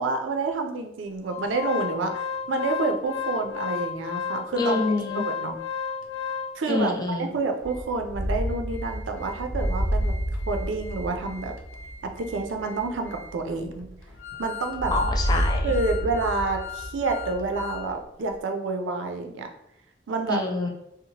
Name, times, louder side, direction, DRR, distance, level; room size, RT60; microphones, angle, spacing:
voice 1, 0.0-4.8 5.2-5.6 6.6-6.9 7.2-10.1 10.5-11.5 12.0-13.9 14.4-14.9 15.6-19.5 20.1-20.4, right 3 dB, 80° right, 5 dB, 0.4 m, -28 dB
Organ, 1.3-6.8 7.3-7.4 7.7-7.8 8.3-17.9 18.2-18.3, left 7 dB, 85° left, 0.4 m, -35 dB
voice 2, 4.6-5.2 6.7-7.3 14.9-15.6 20.3-20.7, left 3 dB, 20° left, 1 dB, 0.4 m, -26 dB
sound 1, 7.6-14.3 14.7-17.9, equal, 70° left, 0.8 m, -30 dB
2.8 x 2.0 x 2.8 m, 0.80 s
head